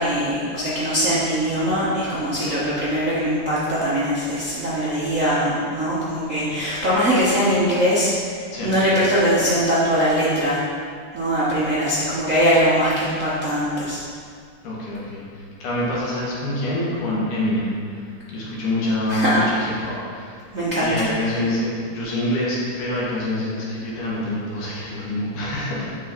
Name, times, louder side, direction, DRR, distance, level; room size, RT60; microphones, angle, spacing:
voice 1, 0.0-8.1 8.6-10.6 11.1-14.0 19.1-19.4 20.5-20.9, equal, 65° right, -10 dB, 0.7 m, -21 dB
voice 2, 14.6-20.4 20.8-25.9, left 1 dB, 75° left, -6 dB, 3.2 m, -26 dB
7.4 x 6.2 x 4.5 m, 2.1 s
omnidirectional pair, 3.5 m